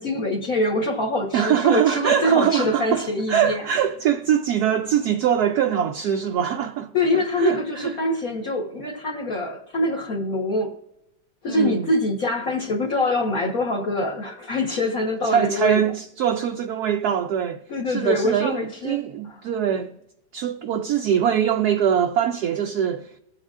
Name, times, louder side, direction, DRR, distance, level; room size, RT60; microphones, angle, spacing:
voice 1, 0.0-3.6 6.9-10.7 11.4-15.8 17.7-19.3, left 2 dB, 50° left, 1.5 m, -24 dB
voice 2, 1.3-8.0 11.5-11.9 15.3-20.0 20.3-23.1, right 9 dB, 70° right, 0.9 m, -23 dB
21.0 x 7.8 x 2.4 m
omnidirectional pair, 2.1 m